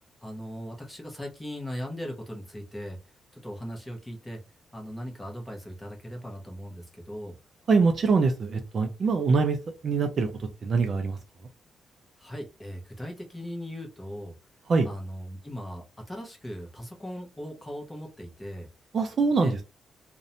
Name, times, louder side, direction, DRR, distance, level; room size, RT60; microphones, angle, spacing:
voice 1, 0.2-3.0 3.3-4.4 4.7-7.3 12.2-14.3 14.8-18.7 19.4-19.5, equal, 10° left, 0.7 m, -38 dB
voice 2, 7.7-9.6 9.8-11.2 14.7-14.9 18.9-19.6, right 4 dB, 35° right, 0.3 m, -24 dB
2.5 x 2.1 x 2.7 m
cardioid pair, 175°, 0 cm